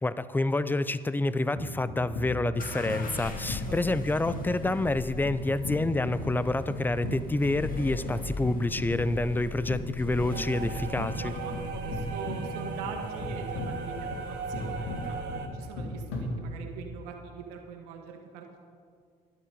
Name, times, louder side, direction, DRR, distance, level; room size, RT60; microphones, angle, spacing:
voice 1, 0.0-11.3, left 2 dB, 10° left, 15 dB, 0.5 m, -28 dB
sound 1, 1.5-16.9, left 1 dB, 80° left, 2.3 m, -37 dB
sound 2, 2.6-15.4, left 2 dB, 45° left, 2.0 m, -42 dB
voice 2, 3.4-3.8 11.2-15.1 15.5-18.6, right 6 dB, 85° right, 3 dB, 1.7 m, -43 dB
sound 3, 10.3-15.5, right 5 dB, 60° right, 1.6 m, -38 dB
13.0 x 11.0 x 5.3 m, 2.2 s
supercardioid pair, 70°, 20 cm